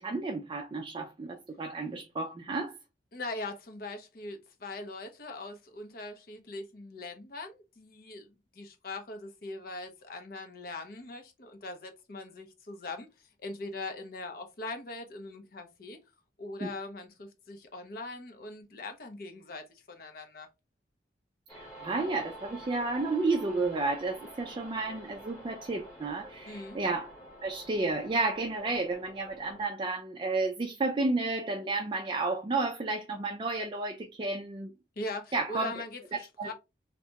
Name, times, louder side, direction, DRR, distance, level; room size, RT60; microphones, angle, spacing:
voice 1, 0.0-2.7 16.6-16.7 21.5-27.1 27.4-34.7 35.3-35.7 36.1-36.5, right 3 dB, 25° right, 0.3 m, -32 dB
voice 2, 3.1-16.0 16.4-20.5 26.5-26.8 35.0-36.5, left 2 dB, 55° left, 0.7 m, -41 dB
sound 1, 21.5-29.6, right 1 dB, 15° left, 1.1 m, -49 dB
2.7 x 2.2 x 2.8 m
head